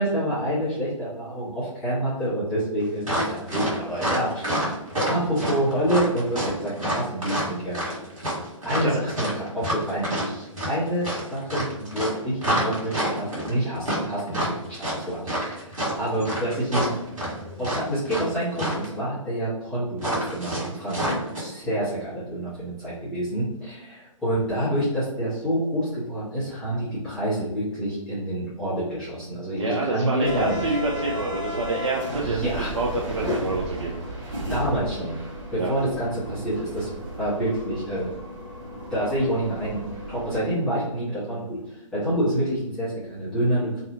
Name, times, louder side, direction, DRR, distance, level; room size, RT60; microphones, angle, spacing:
voice 1, 0.0-4.7 5.1-7.8 8.6-16.9 17.6-30.6 32.2-32.7 34.5-35.1 35.5-36.9 37.2-38.1 38.9-39.8 40.1-43.8, right 1 dB, 5° left, -14 dB, 1.0 m, -27 dB
sound 1, 3.0-18.3 18.5-18.9 20.0-21.4, equal, 75° right, 1.5 m, -28 dB
voice 2, 29.6-32.5 32.7-34.0 35.6-35.7, right 2 dB, 60° right, -3 dB, 0.5 m, -27 dB
sound 2, 30.2-40.4, equal, 30° right, 1.0 m, -34 dB
2.7 x 2.4 x 2.6 m, 0.93 s
figure-of-eight pair, 130°, 17 cm